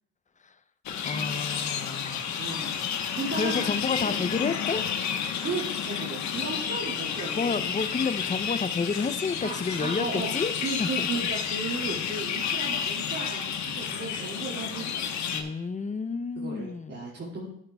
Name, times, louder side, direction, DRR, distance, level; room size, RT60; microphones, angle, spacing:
sound 1, 0.9-15.4, left 7 dB, 70° left, 1.1 m, -31 dB
voice 1, 1.0-2.4 3.3-4.9 7.3-10.5 10.8-11.1 15.3-17.1, left 4 dB, 25° left, 12 dB, 0.6 m, -30 dB
voice 2, 2.4-2.7 3.2-3.7 4.0-4.2 5.4-7.8 9.4-10.3 10.6-15.5 16.4-17.5, right 3 dB, 50° right, -6 dB, 2.7 m, -35 dB
11.0 x 10.5 x 2.3 m, 0.80 s
cardioid pair, 90°, 30 cm